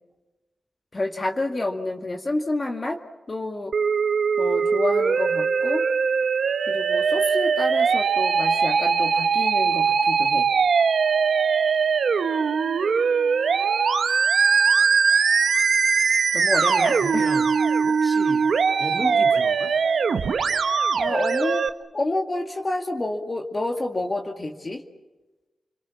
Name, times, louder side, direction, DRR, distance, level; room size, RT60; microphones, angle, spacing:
voice 1, 0.9-3.0 3.3-3.7 4.4-5.9 6.7-10.5 16.3-17.3 21.0-21.7 21.9-24.8, left 2 dB, 35° left, 3 dB, 2.1 m, -28 dB
Musical instrument, 3.7-21.7, right 5 dB, 80° right, 1.2 m, -21 dB
voice 2, 17.0-17.5 17.8-18.5 18.8-19.7, right 1 dB, ahead, 4 dB, 2.6 m, -34 dB
29.5 x 23.0 x 7.3 m, 1.1 s
cardioid pair, 80°, 0 cm